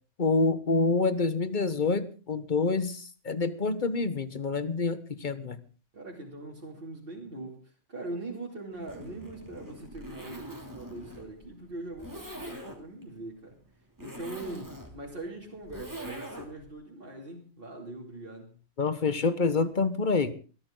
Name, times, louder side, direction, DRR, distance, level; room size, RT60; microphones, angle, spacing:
voice 1, 0.2-3.0 3.2-5.6 18.8-20.3, left 4 dB, 40° left, 13 dB, 1.3 m, -27 dB
voice 2, 5.9-13.6 14.0-18.5, right 2 dB, 50° right, -3 dB, 3.1 m, -41 dB
Zipper (clothing), 8.7-16.7, right 1 dB, 15° right, 2.9 m, -44 dB
21.5 x 13.5 x 3.9 m, 0.36 s
omnidirectional pair, 1.2 m